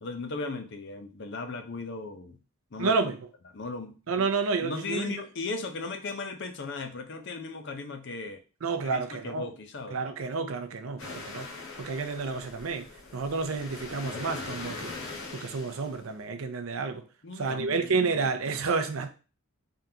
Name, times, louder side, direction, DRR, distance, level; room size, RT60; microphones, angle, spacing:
voice 1, 0.0-2.4 2.7-3.0 3.5-3.9 4.6-8.4 8.8-10.0 17.2-18.0, left 3 dB, 50° left, 0.6 m, -37 dB
voice 2, 2.8-3.2 4.1-5.1 8.6-9.5 9.9-11.5 11.8-12.9 13.1-14.9 15.3-17.0 17.3-19.1, right 4 dB, 70° right, 0.5 m, -30 dB
sound 1, 11.0-16.2, left 3 dB, 70° left, 1.1 m, -41 dB
3.6 x 3.5 x 2.8 m
head